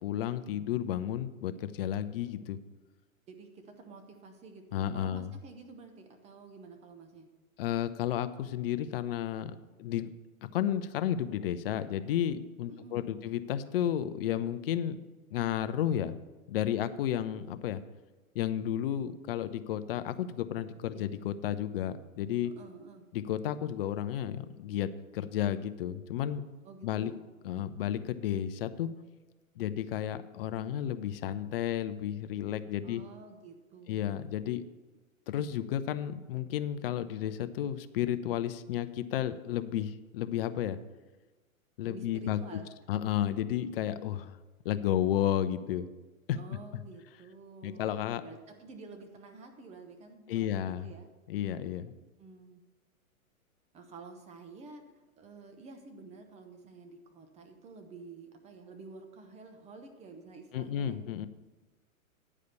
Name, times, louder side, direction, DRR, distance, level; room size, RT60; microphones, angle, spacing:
voice 1, 0.0-2.6 4.7-5.3 7.6-10.1 10.5-15.0 15.3-16.1 16.5-17.8 18.3-22.5 23.1-26.4 26.8-27.1 27.4-28.9 29.6-33.0 33.9-34.6 35.3-40.8 41.8-42.6 42.9-44.4 44.6-45.9 46.3-46.4 47.6-48.2 50.3-50.9 51.3-51.9 60.5-61.3, left 11 dB, 45° left, 12 dB, 0.6 m, -32 dB
voice 2, 3.3-7.3 12.7-13.3 20.9-21.1 22.4-23.1 26.6-27.3 32.8-34.2 41.9-42.7 46.3-47.8 48.2-51.1 52.2-52.6 53.7-54.8 55.2-61.0, right 4 dB, 15° right, 5 dB, 0.9 m, -50 dB
9.6 x 5.0 x 6.9 m, 1.2 s
hypercardioid pair, 130°, 42 cm